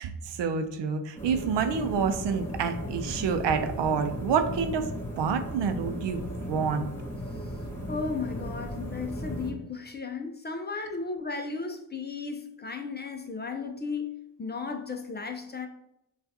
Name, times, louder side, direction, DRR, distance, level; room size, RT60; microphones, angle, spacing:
voice 1, 0.0-4.9 5.2-6.9, right 6 dB, 65° right, 0.6 m, -28 dB
sound 1, 1.2-9.5, equal, 5° left, 1.5 m, -36 dB
voice 2, 7.9-15.7, left 4 dB, 25° left, 0.5 m, -35 dB
5.5 x 2.4 x 2.8 m
supercardioid pair, 60°, 46 cm